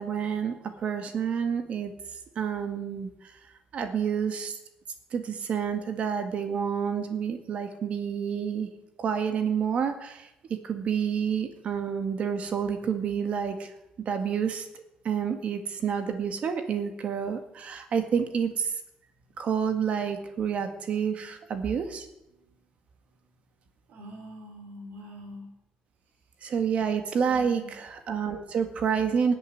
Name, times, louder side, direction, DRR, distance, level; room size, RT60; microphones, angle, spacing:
voice 1, 0.0-1.9 2.4-3.1 3.7-4.5 5.1-8.7 9.0-10.3 10.6-13.7 14.1-14.7 15.0-18.7 19.4-22.1 26.4-29.3, right 7 dB, 50° right, 7 dB, 2.0 m, -29 dB
voice 2, 23.9-25.5 27.3-27.7, equal, 75° right, 5 dB, 3.8 m, -44 dB
17.0 x 8.3 x 9.5 m, 0.87 s
cardioid pair, 175°, 3 cm